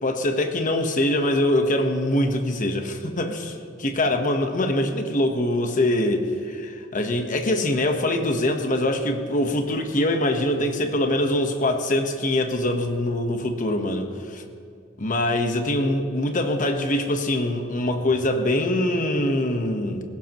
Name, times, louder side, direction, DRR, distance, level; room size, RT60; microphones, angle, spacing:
voice 1, 0.0-14.4 15.0-20.0, left 1 dB, 45° left, 5 dB, 1.2 m, -23 dB
19.5 x 16.5 x 3.1 m, 2.4 s
head